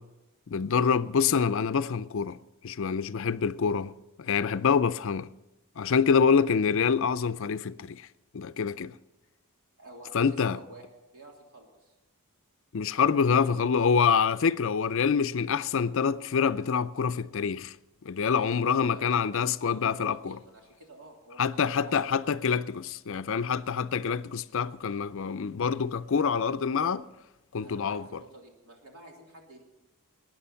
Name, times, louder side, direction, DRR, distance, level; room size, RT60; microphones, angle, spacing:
voice 1, 0.5-2.4 2.6-3.9 4.2-5.3 5.8-8.1 8.3-8.9 10.1-10.6 12.7-17.7 18.0-20.4 21.4-27.0 27.5-28.2, left 6 dB, 60° left, 0.5 m, -26 dB
voice 2, 9.8-10.8 11.1-11.9 13.2-13.6 18.2-19.2 19.6-21.9 26.2-26.3 27.6-29.6, right 1 dB, 80° right, 3.2 m, -50 dB
20.0 x 9.4 x 5.7 m
head